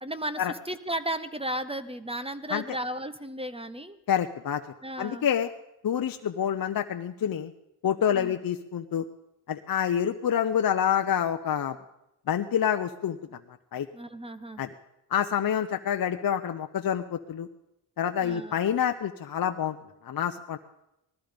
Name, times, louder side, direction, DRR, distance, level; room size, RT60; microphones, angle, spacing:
voice 1, 0.0-4.0 4.8-5.3 8.1-8.3 13.9-14.6 18.2-18.6, right 1 dB, 10° right, 12 dB, 1.0 m, -34 dB
voice 2, 4.1-4.6 5.0-5.5 5.8-7.5 7.8-9.0 9.5-11.8 12.3-13.2 13.7-13.9 14.6-14.7 15.1-17.5 18.0-19.8 20.0-20.6, left 9 dB, 50° left, 6 dB, 0.8 m, -27 dB
19.0 x 14.0 x 5.2 m, 0.88 s
cardioid pair, 80°, 45 cm